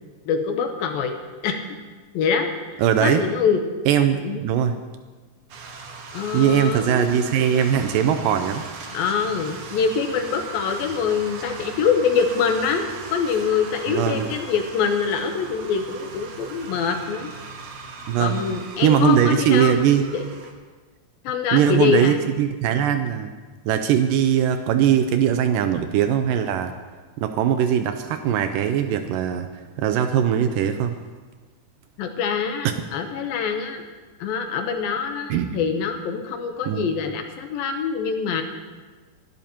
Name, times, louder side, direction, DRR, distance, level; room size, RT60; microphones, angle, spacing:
voice 1, 0.3-1.2 1.4-1.6 2.1-3.6 4.1-4.4 6.1-7.2 8.9-12.8 13.1-17.3 18.2-19.8 20.1-20.3 21.2-22.2 32.0-33.8 34.2-38.4, left 6 dB, 75° left, 5 dB, 2.5 m, -24 dB
voice 2, 2.8-3.3 3.9-4.7 6.3-8.6 13.9-14.3 18.1-18.4 18.8-20.0 21.5-23.3 23.7-26.7 27.2-29.5 29.8-31.0 32.7-32.8 35.3-35.5 36.7-36.9, right 9 dB, 90° right, 8 dB, 1.9 m, -20 dB
sound 1, 5.5-20.5, right 4 dB, 60° right, 1.8 m, -39 dB
25.0 x 12.5 x 2.9 m, 1.4 s
omnidirectional pair, 4.5 m